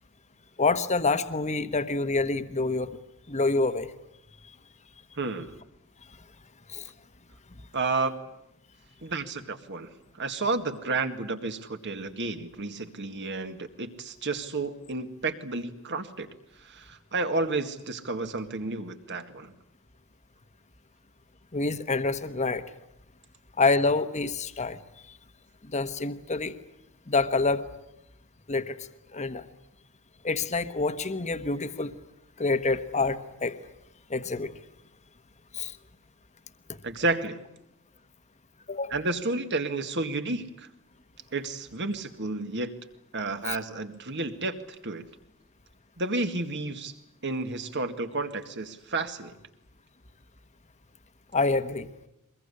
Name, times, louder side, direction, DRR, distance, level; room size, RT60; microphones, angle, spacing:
voice 1, 0.6-3.0 3.3-3.9 6.7-6.9 21.5-22.6 23.6-24.8 25.7-26.6 27.1-27.6 28.5-28.8 29.1-29.4 30.2-31.9 32.4-33.6 34.1-34.5 35.5-35.8 38.7-39.0 43.5-43.6 51.3-51.9, left 3 dB, 35° left, 10 dB, 1.2 m, -27 dB
voice 2, 5.2-5.6 7.7-8.2 9.0-16.3 16.6-19.5 36.8-37.4 38.9-40.7 41.3-42.7 43.1-44.6 44.8-45.1 46.0-46.9 47.2-49.3, right 3 dB, 55° right, 8 dB, 2.1 m, -31 dB
23.5 x 21.5 x 9.9 m, 0.85 s
head